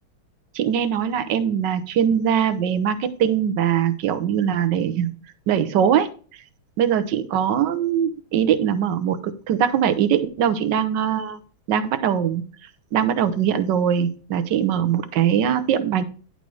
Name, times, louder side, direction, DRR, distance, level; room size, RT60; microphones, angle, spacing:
voice 1, 0.5-5.1 5.5-6.1 6.8-11.4 11.7-12.4 12.9-16.0, right 9 dB, 65° right, 10 dB, 1.3 m, -21 dB
10.5 x 4.1 x 4.7 m, 0.40 s
omnidirectional pair, 2.2 m